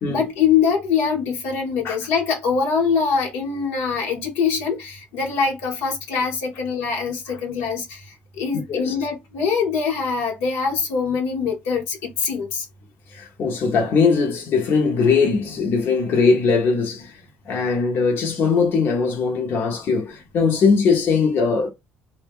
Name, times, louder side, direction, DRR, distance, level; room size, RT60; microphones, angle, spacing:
voice 1, 0.1-8.0 8.4-12.6, left 6 dB, 85° left, 0.9 m, -23 dB
voice 2, 13.1-17.2 17.5-21.7, left 5 dB, 60° left, 0.6 m, -20 dB
2.1 x 2.1 x 3.5 m
supercardioid pair, 90°, 4 cm